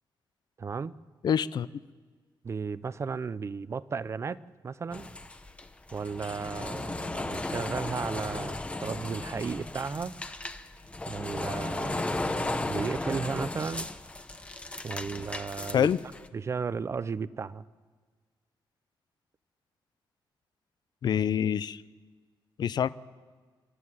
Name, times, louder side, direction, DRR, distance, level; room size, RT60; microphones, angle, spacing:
voice 1, 0.6-0.9 2.4-5.1 5.9-10.2 11.1-13.9 14.8-15.9 16.3-17.6, right 5 dB, 30° right, 17 dB, 0.5 m, -34 dB
voice 2, 1.2-1.7 15.7-16.0 21.0-21.8 22.6-22.9, left 8 dB, 55° left, 17 dB, 0.5 m, -25 dB
sound 1, 4.9-16.3, left 2 dB, 15° left, 0.9 m, -35 dB
25.5 x 13.0 x 9.8 m, 1.5 s
wide cardioid pair, 160°, 9 cm